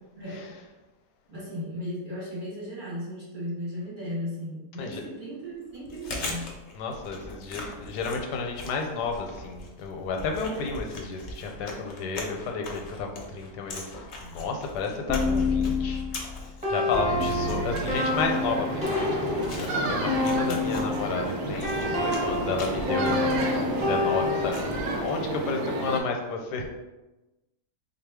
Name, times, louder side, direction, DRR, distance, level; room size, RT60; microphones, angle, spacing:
voice 1, 0.2-0.6 1.3-6.6 17.0-17.6 20.4-20.6, left 1 dB, 40° right, -6 dB, 0.8 m, -36 dB
Chewing mastication, 5.7-25.3, left 2 dB, 60° left, 0.8 m, -41 dB
voice 2, 6.7-16.1 16.7-26.7, left 4 dB, 85° left, 3 dB, 1.2 m, -32 dB
sound 1, 15.1-21.0 21.6-24.8, left 3 dB, 5° right, 0.7 m, -28 dB
sound 2, 17.4-26.0, right 2 dB, 70° right, 0.6 m, -31 dB
4.0 x 2.4 x 3.4 m, 1.0 s
omnidirectional pair, 1.7 m